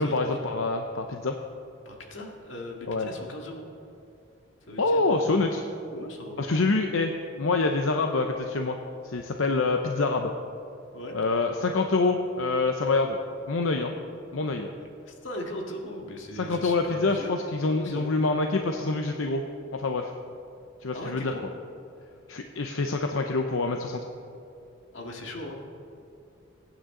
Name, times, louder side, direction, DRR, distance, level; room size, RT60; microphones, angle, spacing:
voice 1, 0.0-1.4 2.9-3.1 4.8-5.6 6.4-7.1 7.4-8.8 9.0-10.3 11.1-13.2 13.5-13.9 14.3-14.7 16.3-19.4 19.7-20.1 20.8-21.3 22.3-24.0, left 3 dB, 85° left, 4 dB, 0.7 m, -26 dB
voice 2, 1.9-3.7 4.7-5.5 5.9-6.4 10.9-11.2 14.8-17.3 17.6-18.1 20.9-21.4 24.9-25.6, left 1 dB, 70° left, 1 dB, 1.9 m, -39 dB
22.0 x 9.3 x 3.8 m, 2.6 s
head